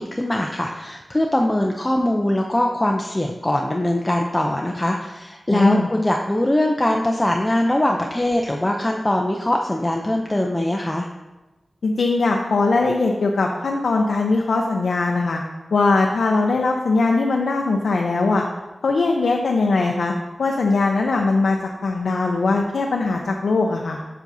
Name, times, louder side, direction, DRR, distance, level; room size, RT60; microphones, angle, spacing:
voice 1, 0.0-11.1, left 1 dB, 20° left, 2 dB, 0.5 m, -22 dB
voice 2, 5.5-5.9 11.8-15.4 15.7-18.4 18.8-20.1 20.4-21.6 21.8-24.0, left 3 dB, 85° left, 1 dB, 0.5 m, -20 dB
7.4 x 6.7 x 2.7 m, 1.1 s
wide cardioid pair, 80°, 0 cm